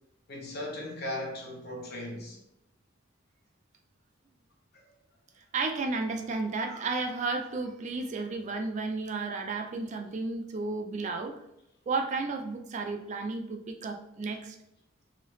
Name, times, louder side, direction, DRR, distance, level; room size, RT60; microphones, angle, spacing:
voice 1, 0.3-2.4 6.2-6.3, left 1 dB, 55° left, 0.8 m, -37 dB
voice 2, 5.5-11.4 11.9-14.6, right 3 dB, 35° right, 0.4 m, -33 dB
3.3 x 2.7 x 3.0 m
head